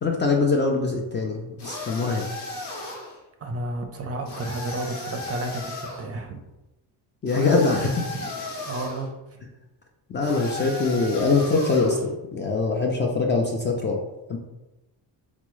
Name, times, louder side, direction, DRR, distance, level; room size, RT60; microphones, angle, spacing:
voice 1, 0.0-2.2 7.2-7.9 10.1-14.0 14.3-14.4, left 3 dB, 25° left, 1 dB, 0.3 m, -23 dB
sound 1, 1.6-3.2 4.2-6.0 7.3-9.1 10.2-12.0, left 2 dB, 85° left, 0.9 m, -35 dB
voice 2, 3.4-6.4 7.8-8.3 8.7-9.4, right 1 dB, 35° right, 4 dB, 0.5 m, -32 dB
3.4 x 2.0 x 3.0 m, 1.0 s
cardioid pair, 90°, 45 cm